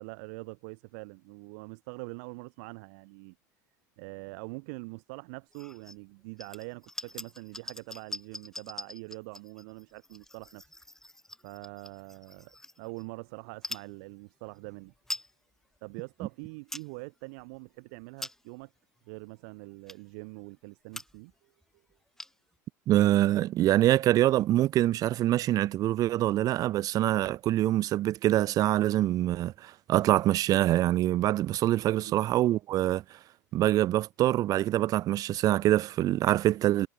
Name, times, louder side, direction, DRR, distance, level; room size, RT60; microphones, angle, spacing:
voice 1, 0.0-3.3 4.0-10.6 11.4-14.9 15.8-18.7 19.1-21.5 31.9-32.2, right 32 dB, 60° right, 4.7 m, -44 dB
sound 1, 5.5-6.0 6.4-13.1 13.5-13.9 14.5-14.6 14.9-15.3 15.8-15.9 16.3-16.9 17.4-17.6 18.0-18.6 19.2-19.3 19.9-20.2 20.6-20.7 20.9-21.3 21.6-21.7 21.9-22.6, left 1 dB, 5° left, 1.2 m, -43 dB
voice 2, 22.9-33.0 33.5-36.9, right 14 dB, 40° right, 0.5 m, -25 dB
figure-of-eight pair, 80°, 10 cm